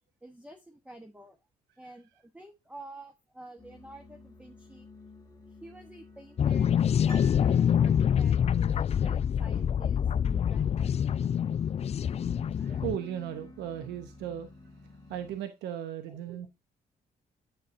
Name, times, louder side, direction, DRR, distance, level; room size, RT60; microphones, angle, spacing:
voice 1, 0.2-1.4 1.8-4.9 5.5-11.0 16.1-16.2, right 1 dB, 5° right, 6 dB, 1.1 m, -49 dB
sound 1, 3.6-15.4, left 2 dB, 20° left, 1.5 m, -51 dB
sound 2, 6.4-13.0, left 8 dB, 40° left, 0.4 m, -26 dB
Piano, 7.1-8.3 8.6-8.7, right 2 dB, 60° right, 3.3 m, -51 dB
voice 2, 12.6-14.5 15.1-16.5, right 10 dB, 90° right, 8 dB, 0.9 m, -36 dB
8.6 x 6.8 x 2.6 m, 0.23 s
supercardioid pair, 70°, 17 cm